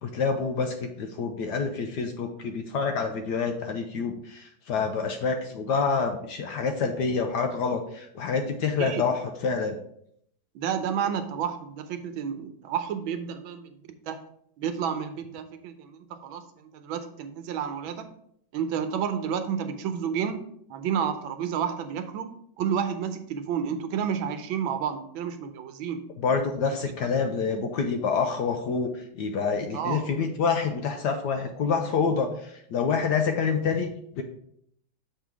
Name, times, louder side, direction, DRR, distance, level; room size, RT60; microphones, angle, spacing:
voice 1, 0.0-9.8 26.2-33.9 34.2-34.3, left 5 dB, 70° left, 5 dB, 1.1 m, -27 dB
voice 2, 10.5-13.7 14.1-14.2 14.6-16.4 16.7-18.1 18.5-22.3 22.6-26.0 27.2-27.3 29.7-30.0, right 8 dB, 80° right, 8 dB, 1.4 m, -30 dB
6.5 x 3.7 x 4.7 m, 0.70 s
omnidirectional pair, 2.2 m